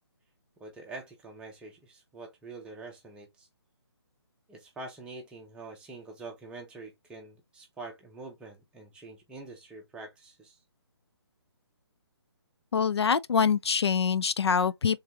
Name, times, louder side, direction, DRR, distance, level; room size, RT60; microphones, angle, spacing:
voice 1, 0.6-3.5 4.5-10.6, right 3 dB, 5° right, 0.8 m, -45 dB
voice 2, 12.7-15.0, left 6 dB, 75° left, 0.4 m, -25 dB
3.4 x 3.3 x 2.9 m
figure-of-eight pair, 145°, 14 cm